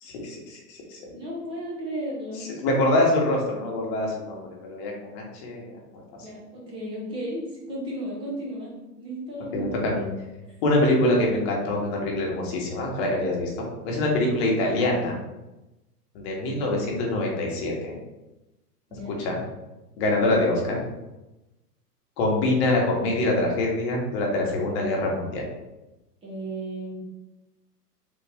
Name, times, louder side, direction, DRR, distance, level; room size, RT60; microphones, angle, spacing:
voice 1, 0.0-1.0 2.4-6.0 9.5-10.0 10.6-15.2 16.1-18.0 19.2-19.4 20.0-20.8 22.2-25.5, left 1 dB, 40° left, -1 dB, 1.1 m, -25 dB
voice 2, 1.1-2.4 6.2-9.7 18.9-19.2 26.2-27.0, right 1 dB, 10° right, -5 dB, 0.5 m, -34 dB
3.5 x 2.4 x 3.4 m, 1.0 s
hypercardioid pair, 135°, 48 cm